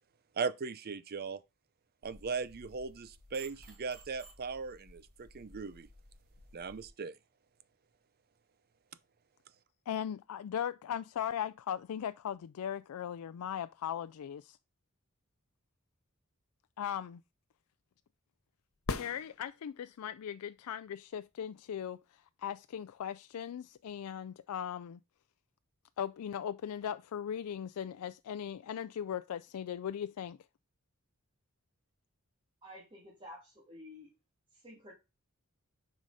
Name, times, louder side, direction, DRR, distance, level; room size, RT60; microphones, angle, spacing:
voice 1, 0.4-1.4 2.0-5.9 6.5-7.2, right 5 dB, 45° right, 0.5 m, -38 dB
sound 1, 2.0-6.9, right 2 dB, 90° right, 2.3 m, -56 dB
voice 2, 9.9-14.6 16.8-17.2 18.9-25.0 26.0-30.4, left 9 dB, 85° left, 0.4 m, -38 dB
sound 2, 18.8-20.0 23.9-24.0, left 3 dB, 65° left, 0.8 m, -39 dB
voice 3, 32.6-34.1 34.5-34.9, left 1 dB, 25° right, 2.3 m, -51 dB
7.4 x 5.0 x 4.0 m
head